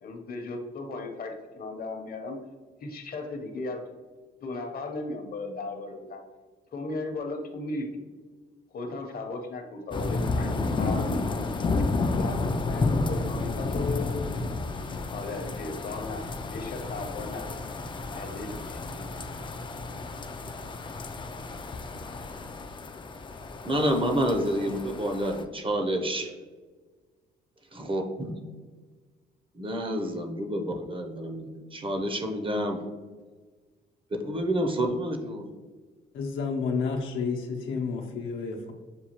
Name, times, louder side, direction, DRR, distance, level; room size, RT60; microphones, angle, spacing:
voice 1, 0.0-2.4 2.8-3.8 4.4-6.2 6.7-8.0 8.7-11.2 11.8-14.2 15.1-17.6 18.1-19.1, left 3 dB, 50° left, 4 dB, 0.8 m, -36 dB
sound 1, 9.9-25.4, left 3 dB, 25° left, 0.3 m, -31 dB
voice 2, 23.6-26.3 27.7-28.3 29.6-32.8 34.2-35.4, equal, 25° right, 4 dB, 0.6 m, -28 dB
voice 3, 36.1-38.7, left 5 dB, 80° left, 1 dB, 0.8 m, -30 dB
6.9 x 2.3 x 2.9 m, 1.4 s
cardioid pair, 90°, 20 cm